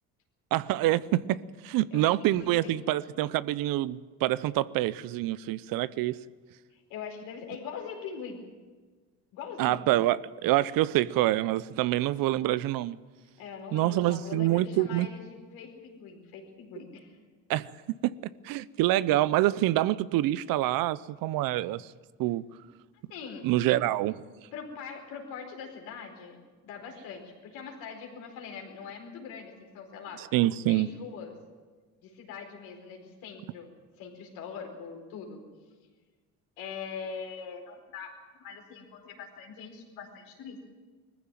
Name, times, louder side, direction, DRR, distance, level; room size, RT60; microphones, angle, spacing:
voice 1, 0.5-1.4 1.6-6.2 9.6-13.0 13.7-15.1 17.5-17.7 18.0-18.2 18.4-21.9 22.2-22.4 23.4-24.2 30.3-30.9, right 15 dB, 75° right, 0.8 m, -26 dB
voice 2, 1.9-2.7 6.7-8.4 9.3-9.9 13.4-17.2 23.1-23.4 24.5-30.2 30.7-31.3 32.0-33.7 34.0-35.4 36.6-40.6, left 6 dB, 80° left, 4.7 m, -42 dB
20.5 x 15.0 x 9.2 m
supercardioid pair, 70°, 35 cm